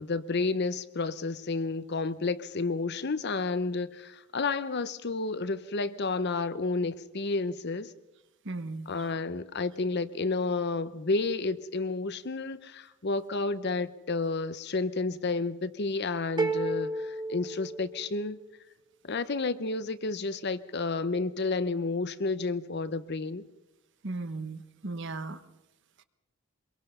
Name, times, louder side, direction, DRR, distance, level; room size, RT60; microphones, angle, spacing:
voice 1, 0.0-7.9 8.9-18.4 19.0-23.4, left 3 dB, 50° left, 14 dB, 0.8 m, -31 dB
voice 2, 8.4-8.9 24.0-25.4, right 3 dB, 55° right, 11 dB, 1.1 m, -36 dB
sound 1, 16.4-18.4, right 2 dB, 20° right, 1.6 m, -32 dB
24.5 x 22.5 x 5.5 m, 0.98 s
head